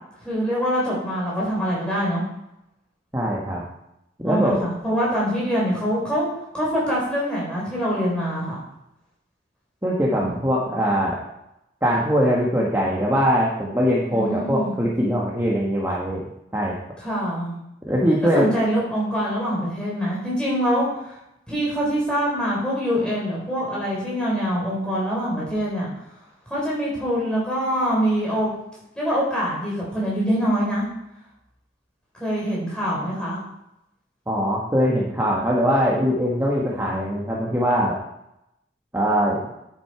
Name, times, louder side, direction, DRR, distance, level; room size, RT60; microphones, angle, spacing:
voice 1, 0.2-2.2 4.2-6.3 6.5-8.6 14.1-14.7 17.0-17.5 18.3-21.2 21.5-25.9 26.5-28.5 29.0-30.9 32.2-33.4, equal, 5° left, -6 dB, 4.2 m, -24 dB
voice 2, 3.1-3.6 4.2-4.6 9.8-11.2 11.8-16.2 16.5-16.8 17.9-18.5 34.3-38.0 38.9-39.5, equal, 15° right, -4 dB, 1.4 m, -21 dB
10.0 x 7.6 x 4.9 m, 0.85 s
head